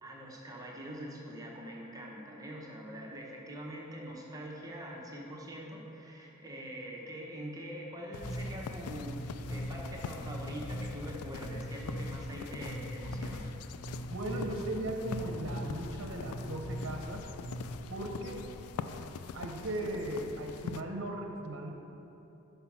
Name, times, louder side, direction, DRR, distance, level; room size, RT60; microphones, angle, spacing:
voice 1, 0.0-13.5 18.9-19.1, equal, 15° right, -2 dB, 0.7 m, -44 dB
sound 1, 8.1-20.8, left 6 dB, 90° left, 0.3 m, -44 dB
Bass guitar, 8.2-17.8, equal, ahead, 1.0 m, -41 dB
voice 2, 14.1-17.2 17.9-18.5 19.3-21.7, right 1 dB, 60° right, 2 dB, 0.7 m, -37 dB
5.7 x 5.5 x 5.9 m, 2.9 s
head